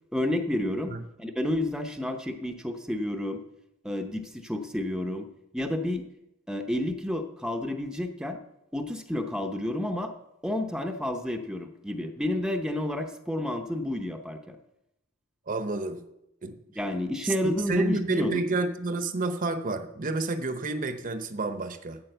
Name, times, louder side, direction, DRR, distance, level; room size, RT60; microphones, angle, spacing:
voice 1, 0.1-0.9 1.2-3.4 3.8-5.3 5.5-6.0 6.5-8.4 8.7-10.1 10.4-14.6 16.8-18.5, left 1 dB, 5° right, 5 dB, 0.7 m, -30 dB
voice 2, 15.5-16.0 16.4-16.6 17.2-22.0, right 2 dB, 40° right, 10 dB, 0.8 m, -30 dB
8.8 x 7.5 x 7.9 m, 0.87 s
head